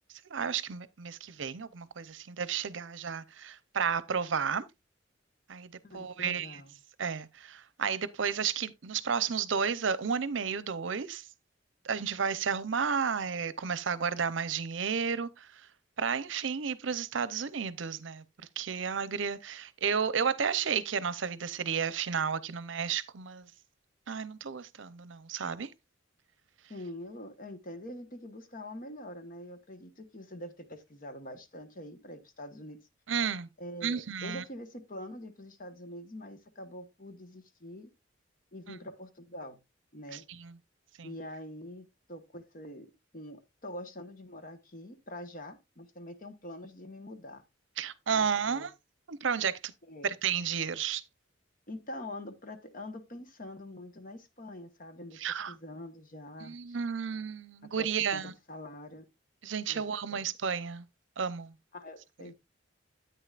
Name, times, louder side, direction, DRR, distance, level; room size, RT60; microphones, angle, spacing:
voice 1, 0.3-4.6 5.5-6.6 7.0-11.2 11.8-15.7 16.0-18.2 18.6-23.5 24.1-25.7 33.1-33.5 33.8-34.4 38.7-38.8 40.1-40.6 41.0-41.1 47.8-48.7 49.1-49.7 50.0-51.0 55.2-55.5 56.4-58.3 59.4-60.9 61.2-61.5, right 6 dB, 75° right, 0.6 m, -32 dB
voice 2, 5.8-6.7 26.7-32.8 33.6-37.9 38.5-39.6 39.9-40.2 41.0-42.9 43.1-47.4 48.1-48.7 49.8-50.1 51.7-55.2 55.5-56.8 57.8-59.1 59.7-59.8 60.1-60.2 61.7-62.3, left 1 dB, 45° left, 1.2 m, -45 dB
9.9 x 8.8 x 2.4 m
head